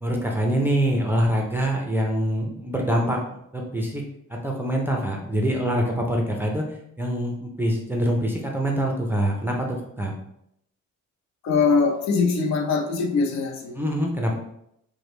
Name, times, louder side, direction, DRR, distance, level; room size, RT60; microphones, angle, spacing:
voice 1, 0.0-4.0 4.3-10.1 13.8-14.3, equal, 5° right, 0 dB, 0.5 m, -25 dB
voice 2, 11.4-13.8, left 4 dB, 60° left, 3 dB, 0.7 m, -22 dB
4.9 x 2.1 x 3.1 m, 0.77 s
cardioid pair, 140°, 30 cm